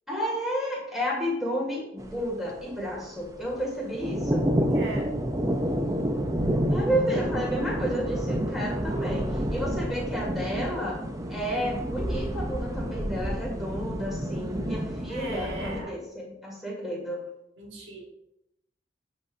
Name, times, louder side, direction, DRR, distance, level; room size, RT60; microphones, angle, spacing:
voice 1, 0.1-4.5 6.7-11.0 11.3-17.2, equal, ahead, -4 dB, 2.1 m, -31 dB
sound 1, 2.0-15.8, equal, 15° right, 0.5 m, -29 dB
voice 2, 4.7-5.2 15.1-16.0 17.6-18.0, right 2 dB, 75° right, -1 dB, 1.4 m, -38 dB
7.8 x 5.5 x 2.6 m, 0.81 s
head